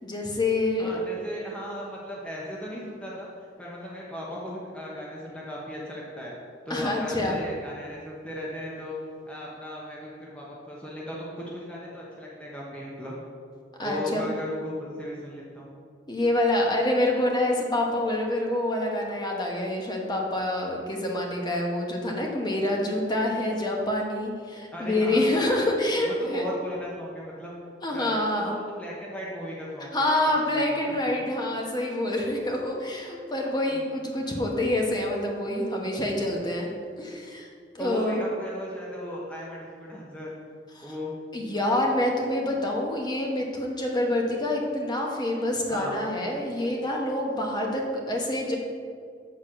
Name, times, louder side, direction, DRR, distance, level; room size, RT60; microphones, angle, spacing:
voice 1, 0.0-0.9 6.7-7.4 13.8-14.3 16.1-26.5 27.8-28.5 29.9-36.7 37.0-37.5 37.7-38.2 40.8-40.9 41.3-48.6, left 1 dB, 25° left, 0 dB, 1.1 m, -27 dB
voice 2, 0.8-3.3 3.6-6.3 6.7-9.0 9.3-13.2 13.8-15.7 24.7-25.3 26.0-27.5 27.9-31.2 33.7-33.9 37.8-40.3 40.8-41.1 45.7-46.0, equal, 5° left, -5 dB, 0.9 m, -37 dB
7.7 x 4.1 x 6.3 m, 2.2 s
head